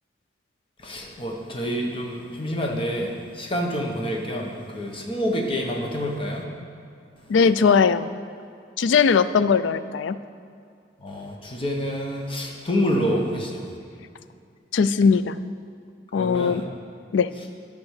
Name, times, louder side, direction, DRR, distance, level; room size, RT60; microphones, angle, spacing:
voice 1, 0.8-6.4 11.0-13.6 16.2-16.6, equal, 30° left, 0 dB, 1.2 m, -27 dB
voice 2, 7.3-8.1 8.8-10.2 14.7-15.4 16.1-16.6 17.1-17.3, left 5 dB, 85° left, 14 dB, 0.4 m, -19 dB
11.5 x 5.3 x 6.5 m, 2.4 s
head